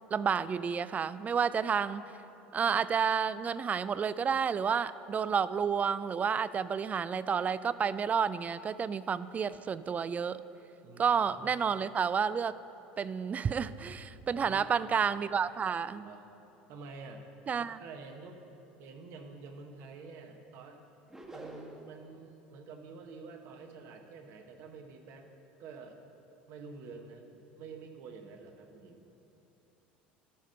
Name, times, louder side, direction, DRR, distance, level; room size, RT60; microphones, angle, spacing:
voice 1, 0.1-2.1 2.5-10.4 11.0-12.5 13.0-16.1 17.5-17.8, right 6 dB, 30° right, 16 dB, 0.3 m, -30 dB
voice 2, 10.8-11.5 14.4-14.9 15.9-16.3 16.7-17.2 17.6-18.4 18.8-20.8 21.3-25.3 25.6-26.0 26.5-27.3 27.5-29.1, right 4 dB, 55° right, 4 dB, 1.1 m, -48 dB
sound 1, 21.1-22.0, right 1 dB, 10° right, 1.2 m, -46 dB
13.0 x 5.1 x 5.5 m, 2.9 s
hypercardioid pair, 75°, 5 cm